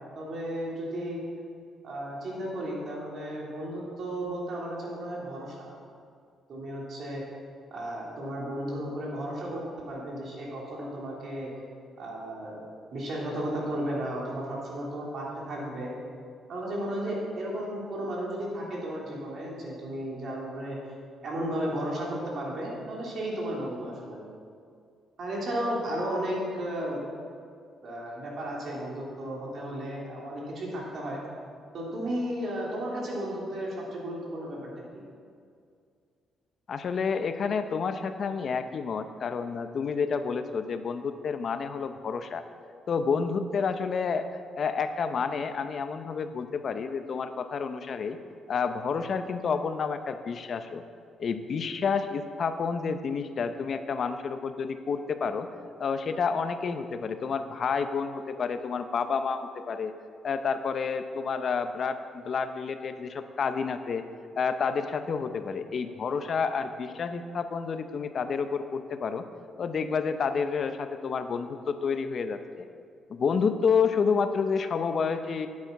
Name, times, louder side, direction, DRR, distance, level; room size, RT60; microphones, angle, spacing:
voice 1, 0.1-1.2 1.8-5.7 6.5-7.2 7.7-11.5 12.0-12.6 12.9-15.9 16.5-20.8 21.2-24.2 25.2-27.0 27.8-31.2 31.7-34.7, right 1 dB, 60° right, -3 dB, 3.2 m, -34 dB
voice 2, 36.7-42.4 42.9-44.3 44.6-48.2 48.5-50.8 51.2-55.5 55.8-59.9 60.2-62.0 62.2-64.0 64.4-69.2 69.6-72.7 73.1-75.5, left 5 dB, 55° left, 9 dB, 0.6 m, -29 dB
9.7 x 8.6 x 5.9 m, 2.3 s
cardioid pair, 90°, 0 cm